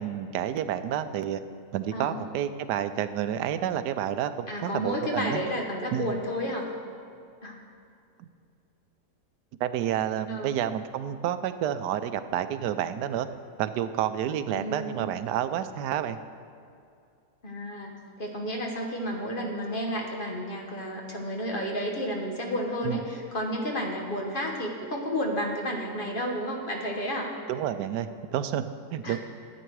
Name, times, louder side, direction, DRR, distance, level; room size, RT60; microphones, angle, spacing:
voice 1, 0.0-1.4 1.7-5.4 5.9-6.1 8.2-8.3 9.6-13.3 13.6-16.2 22.8-23.0 27.5-28.7 28.9-29.2, right 10 dB, 85° right, 11 dB, 1.2 m, -29 dB
voice 2, 1.9-2.2 4.5-6.7 7.4-7.6 10.3-10.6 14.5-15.1 17.4-27.4 29.0-29.2, equal, 35° left, 0 dB, 1.2 m, -31 dB
12.5 x 8.6 x 4.7 m, 2.4 s
omnidirectional pair, 1.8 m